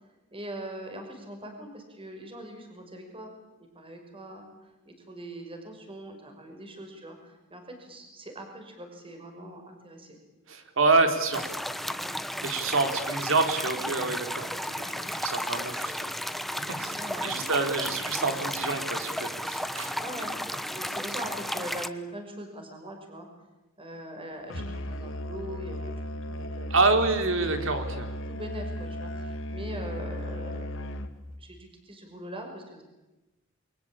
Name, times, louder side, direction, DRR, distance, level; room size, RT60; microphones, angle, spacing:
voice 1, 0.3-3.3 3.6-10.2 11.8-12.0 16.9-18.3 19.8-20.4 20.7-23.3 23.8-27.2 28.3-30.9 31.4-32.8, right 1 dB, 25° right, 4 dB, 5.7 m, -42 dB
voice 2, 10.5-11.4 12.4-16.1 16.8-19.9 26.7-28.2, right 3 dB, 65° right, 6 dB, 3.9 m, -27 dB
sound 1, 11.3-21.9, equal, ahead, 1.1 m, -33 dB
Musical instrument, 24.5-31.3, left 1 dB, 65° left, 2.4 m, -35 dB
28.5 x 23.5 x 8.8 m, 1.0 s
head